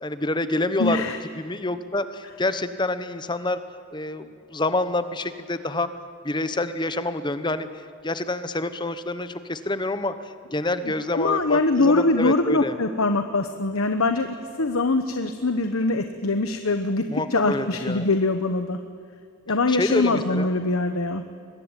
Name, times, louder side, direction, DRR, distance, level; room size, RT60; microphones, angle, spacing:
voice 1, 0.0-1.0 1.3-3.6 3.9-5.9 6.2-7.7 8.0-10.1 10.5-12.8 17.1-18.1 19.7-20.5, left 2 dB, 20° left, 12 dB, 1.0 m, -27 dB
voice 2, 0.8-1.2 10.8-14.3 14.6-17.0 17.3-18.8 19.5-21.2, left 2 dB, 90° left, 8 dB, 1.2 m, -23 dB
24.0 x 20.5 x 9.1 m, 2.3 s
head